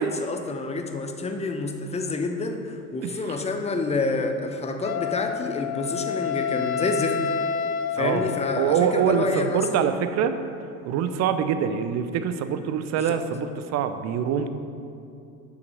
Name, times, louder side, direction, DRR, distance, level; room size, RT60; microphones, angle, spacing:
voice 1, 0.0-7.2 7.9-9.9 12.9-13.2, left 3 dB, 15° left, 5 dB, 0.9 m, -28 dB
Wind instrument woodwind instrument, 4.8-8.8, left 7 dB, 85° left, 0.5 m, -29 dB
voice 2, 8.0-8.3 8.5-10.3 10.8-14.5, right 8 dB, 40° right, 10 dB, 0.7 m, -24 dB
7.9 x 6.0 x 6.2 m, 2.6 s
hypercardioid pair, 75°, 42 cm